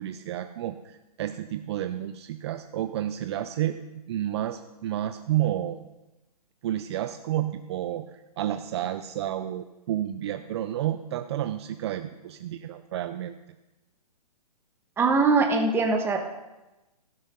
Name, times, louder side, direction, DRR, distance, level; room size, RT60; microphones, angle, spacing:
voice 1, 0.0-3.8 4.1-5.8 6.6-8.1 8.4-13.4, right 12 dB, 40° right, 9 dB, 0.6 m, -30 dB
voice 2, 15.0-16.2, right 4 dB, 10° right, 3 dB, 1.4 m, -22 dB
15.5 x 11.0 x 3.9 m, 1.1 s
hypercardioid pair, 140°, 21 cm